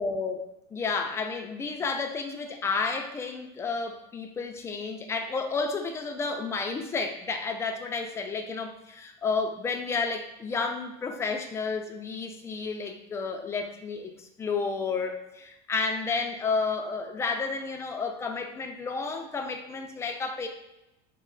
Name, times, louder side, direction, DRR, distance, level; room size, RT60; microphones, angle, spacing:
voice 1, 0.0-20.5, left 4 dB, 20° left, 4 dB, 0.4 m, -31 dB
3.1 x 2.0 x 3.8 m, 0.90 s
cardioid pair, 130°, 15 cm